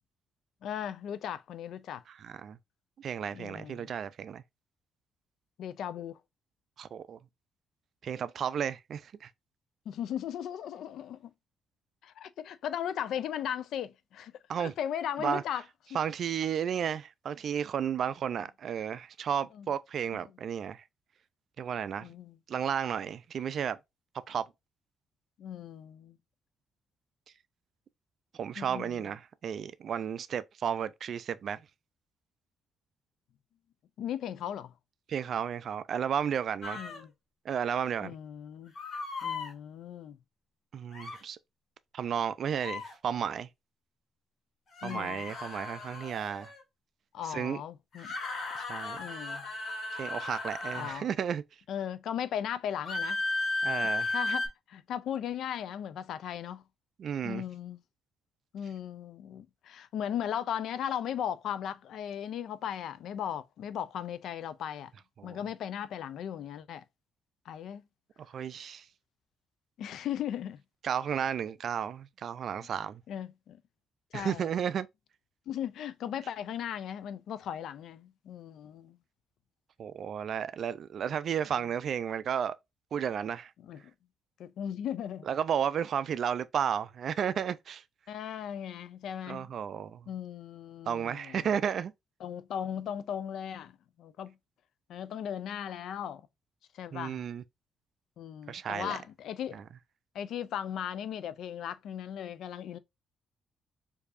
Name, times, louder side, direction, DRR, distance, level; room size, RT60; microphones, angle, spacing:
voice 1, 0.6-2.0 3.3-3.9 5.6-6.2 9.9-11.3 12.0-14.3 14.6-15.6 15.9-16.0 19.5-19.7 20.1-20.3 22.0-22.4 25.4-26.2 28.6-29.1 34.0-34.7 36.7-37.1 38.0-38.7 39.2-40.2 44.8-45.3 47.1-48.1 48.9-49.5 50.7-51.1 51.7-53.2 53.9-56.6 57.2-57.8 58.5-64.9 65.2-66.8 67.5-67.8 69.8-70.6 72.6-72.7 73.1-73.6 74.1-74.5 75.5-79.0 83.6-83.8 84.4-85.3 88.1-89.5 90.1-91.5 92.2-94.4 94.9-96.2 96.7-97.2 98.2-99.6 100.1-102.8, left 9 dB, 75° left, 0.4 m, -37 dB
voice 2, 2.2-2.6 3.0-4.4 6.8-7.2 8.0-9.3 14.5-14.7 15.2-15.4 15.9-20.8 21.6-22.1 22.5-23.8 24.3-24.4 28.3-31.6 35.1-36.8 37.4-38.1 40.7-41.4 41.9-43.5 44.8-46.5 47.2-47.6 48.6-49.0 50.0-51.4 53.6-54.2 57.0-57.4 65.2-65.4 68.3-68.9 70.8-73.0 74.1-74.9 79.8-82.5 82.9-83.5 85.3-87.8 89.3-90.1 90.9-91.9 96.9-97.4 98.5-99.0 99.5-99.6, right 8 dB, 60° right, 0.3 m, -33 dB
sound 1, 36.6-37.0 38.8-39.5 40.9-41.2 42.5-42.9 44.7-46.6 47.9-51.0 52.9-54.5, left 2 dB, 55° left, 1.5 m, -35 dB
4.6 x 2.7 x 2.5 m
cardioid pair, 90°, 0 cm